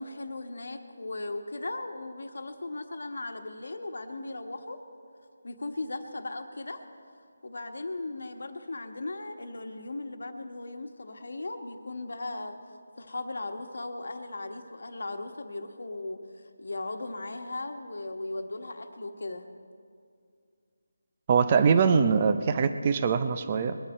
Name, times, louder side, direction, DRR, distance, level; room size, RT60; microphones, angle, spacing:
voice 1, 0.0-4.8 5.4-6.8 7.4-12.6 13.0-16.2 16.6-19.5, left 2 dB, 70° left, 6 dB, 1.3 m, -37 dB
voice 2, 21.3-23.8, right 5 dB, 25° right, 10 dB, 0.6 m, -23 dB
21.5 x 10.0 x 4.4 m, 2.3 s
figure-of-eight pair, 170°, 0 cm